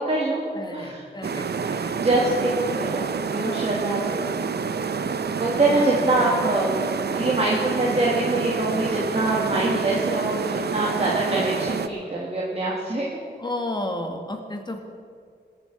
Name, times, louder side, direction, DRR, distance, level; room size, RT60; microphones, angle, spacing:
voice 1, 0.0-0.5 0.7-1.0 2.0-3.0 3.3-4.3 5.4-6.7 7.1-13.1, right 2 dB, 35° right, -4 dB, 2.1 m, -24 dB
voice 2, 0.5-1.9 5.7-6.0 13.4-14.8, left 1 dB, 25° left, 4 dB, 1.7 m, -32 dB
sound 1, 1.2-11.9, right 5 dB, 60° right, 0.7 m, -28 dB
21.5 x 7.9 x 6.1 m, 2.2 s
wide cardioid pair, 120°, 19 cm